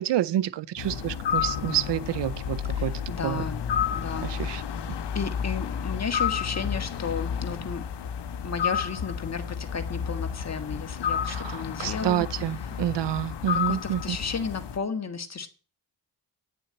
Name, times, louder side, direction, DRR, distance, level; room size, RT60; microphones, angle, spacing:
voice 1, 0.0-3.4 4.2-4.6 4.9-5.0 11.3-14.2, right 12 dB, 85° right, 0.7 m, -29 dB
sound 1, 0.8-14.8, left 8 dB, 85° left, 1.1 m, -31 dB
voice 2, 2.7-3.6 3.9-4.6 5.1-7.8 8.4-12.2 13.5-15.5, left 5 dB, 40° left, 1.7 m, -33 dB
10.0 x 6.9 x 8.8 m
cardioid pair, 105°, 41 cm